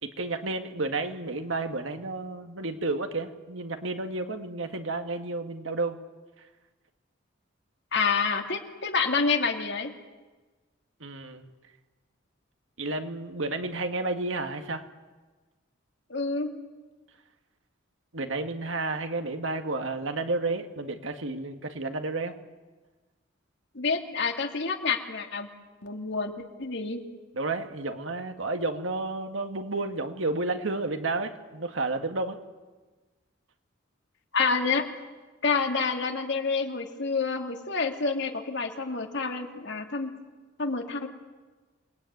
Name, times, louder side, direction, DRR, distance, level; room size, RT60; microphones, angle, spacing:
voice 1, 0.0-6.0 11.0-11.5 12.8-14.9 18.1-22.4 27.3-32.4, right 2 dB, 75° right, 6 dB, 2.0 m, -31 dB
voice 2, 7.9-9.9 16.1-16.5 23.7-25.5 25.8-26.3 26.6-27.0 34.3-34.8 35.4-40.1 40.6-41.1, left 4 dB, 60° left, 4 dB, 2.5 m, -28 dB
28.0 x 20.0 x 9.5 m, 1.3 s
head